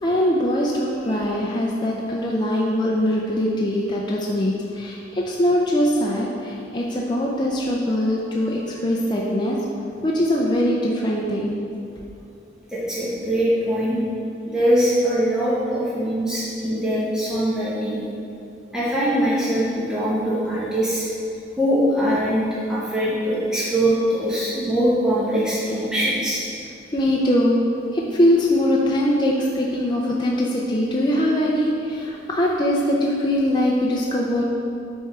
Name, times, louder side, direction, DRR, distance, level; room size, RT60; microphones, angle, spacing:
voice 1, 0.0-9.6 10.0-11.6 26.9-27.6 27.9-34.5, left 1 dB, 25° left, -3 dB, 0.5 m, -22 dB
voice 2, 12.7-14.0 14.4-18.0 18.7-21.1 21.6-26.4, equal, 5° right, -9 dB, 1.1 m, -22 dB
7.2 x 3.6 x 4.7 m, 2.6 s
head